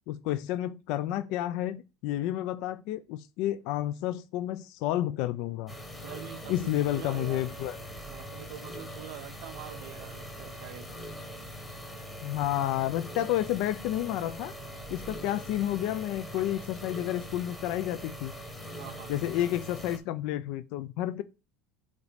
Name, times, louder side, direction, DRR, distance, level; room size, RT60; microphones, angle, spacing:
voice 1, 0.1-5.7 6.5-7.8 12.2-14.5 14.9-18.3 19.1-21.2, left 13 dB, 55° left, 0.3 m, -30 dB
sound 1, 5.7-20.0, equal, 10° left, 1.0 m, -42 dB
voice 2, 6.0-7.5 8.1-10.9 18.8-19.2, right 13 dB, 60° right, 0.5 m, -45 dB
5.0 x 4.0 x 4.9 m
supercardioid pair, 160°, 0 cm